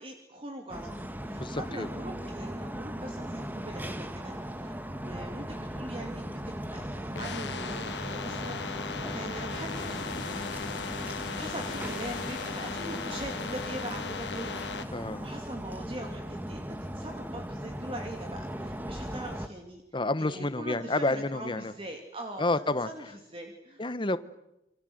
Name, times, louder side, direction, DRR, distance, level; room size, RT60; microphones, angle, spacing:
voice 1, 0.0-19.8 20.2-23.9, right 1 dB, 30° right, 3 dB, 2.6 m, -42 dB
sound 1, 0.7-19.5, equal, 10° right, 1.4 m, -38 dB
voice 2, 1.3-1.9 14.9-15.3 19.9-21.7 22.4-22.9 23.8-24.2, left 2 dB, 30° left, 13 dB, 1.1 m, -29 dB
sound 2, 7.1-14.8, left 5 dB, 80° left, 1.9 m, -37 dB
sound 3, 9.5-15.5, left 4 dB, 50° left, 2.4 m, -46 dB
28.5 x 25.0 x 7.9 m, 0.91 s
head